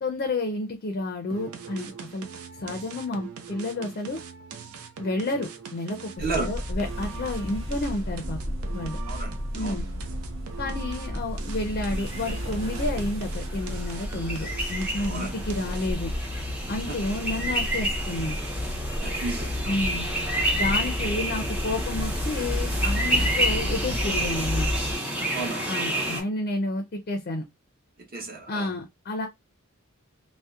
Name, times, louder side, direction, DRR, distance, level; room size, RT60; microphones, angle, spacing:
voice 1, 0.0-2.3 2.6-4.2 5.0-8.4 8.7-9.0 9.5-9.8 10.6-16.1 16.7-18.4 19.7-20.1 20.5-24.7 25.7-27.5 28.5-29.3, left 2 dB, 45° left, 0.4 m, -30 dB
sound 1, 1.3-16.1, right 6 dB, 90° right, 0.5 m, -42 dB
voice 2, 6.2-6.5 9.1-9.3 9.6-9.8 15.1-15.3 19.0-19.8 25.3-26.1 28.1-28.7, right 3 dB, 45° right, 0.9 m, -33 dB
sound 2, 6.2-25.0, left 1 dB, 65° right, 1.3 m, -32 dB
sound 3, 11.7-26.2, right 1 dB, 5° right, 0.7 m, -30 dB
2.7 x 2.0 x 2.3 m
head